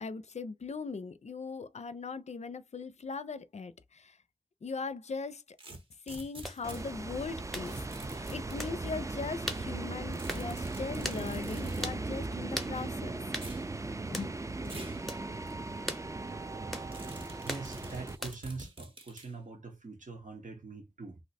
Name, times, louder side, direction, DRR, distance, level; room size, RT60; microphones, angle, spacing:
voice 1, 0.0-4.2 4.6-5.6 6.1-13.1 14.1-14.3 14.6-14.9, left 4 dB, 60° left, 0.4 m, -40 dB
sound 1, 5.6-6.9 7.7-8.6 10.1-11.9 13.3-13.7 14.6-15.0 15.5-15.6 16.9-19.3, right 2 dB, 45° right, 0.8 m, -46 dB
sound 2, 6.4-6.6 7.5-7.7 8.6-8.8 9.5-9.7 10.3-10.5 11.0-11.2 11.8-12.0 12.5-12.7 13.3-13.5 14.1-14.3 15.1-15.2 15.9-16.1 16.7-16.9 17.5-17.7 18.2-18.5, equal, ahead, 0.7 m, -38 dB
sound 3, 6.6-18.2, right 3 dB, 25° right, 0.3 m, -38 dB
voice 2, 17.4-21.2, right 3 dB, 80° right, 1.0 m, -43 dB
2.7 x 2.1 x 4.1 m
wide cardioid pair, 50°, 13 cm